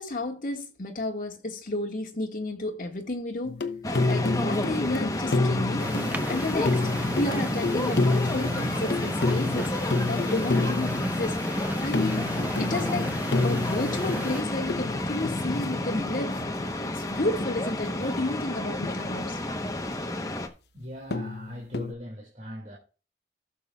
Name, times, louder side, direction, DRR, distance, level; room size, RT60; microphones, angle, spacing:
voice 1, 0.0-3.6 4.1-5.9 6.3-11.4 11.8-12.3 12.6-13.1 13.4-19.4, left 2 dB, 50° left, 1.9 m, -32 dB
sound 1, 3.4-16.7 17.4-18.0 18.8-19.0 21.1-21.9, left 3 dB, 70° left, 0.8 m, -30 dB
sound 2, 3.8-20.5, left 1 dB, 20° left, 1.0 m, -30 dB
sound 3, 5.8-14.4, right 1 dB, 10° right, 0.5 m, -35 dB
voice 2, 20.7-22.8, equal, 40° right, 2.2 m, -40 dB
16.0 x 6.9 x 2.4 m
head